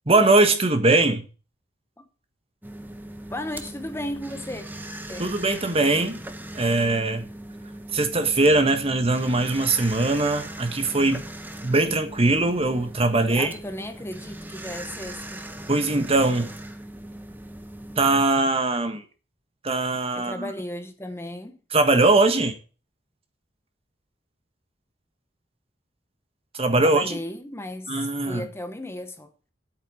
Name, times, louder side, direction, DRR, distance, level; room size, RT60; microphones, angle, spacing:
voice 1, 0.1-1.3 5.2-6.2 6.5-7.3 7.9-11.3 11.6-13.5 15.7-16.5 18.0-19.0 19.6-20.5 21.7-22.6 26.5-27.2 27.9-28.5, right 2 dB, 35° right, 1.5 m, -21 dB
sound 1, 2.6-18.2, right 1 dB, 10° right, 1.0 m, -39 dB
voice 2, 3.3-4.6 5.1-5.3 13.3-15.5 20.1-21.6 26.8-29.3, left 1 dB, 15° left, 0.9 m, -35 dB
8.6 x 8.1 x 7.7 m
head